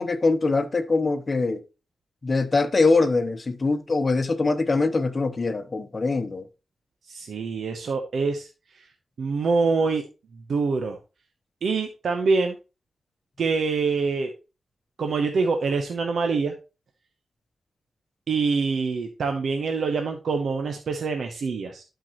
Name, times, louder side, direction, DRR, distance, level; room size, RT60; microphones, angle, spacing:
voice 1, 0.0-1.6 2.2-6.5, left 3 dB, 40° left, 1.0 m, -23 dB
voice 2, 7.1-8.5 9.2-10.0 10.5-11.0 11.6-12.6 13.4-14.3 15.0-16.5 18.3-21.8, right 4 dB, 75° right, 0.9 m, -25 dB
12.0 x 4.7 x 3.1 m
cardioid pair, 75°, 0 cm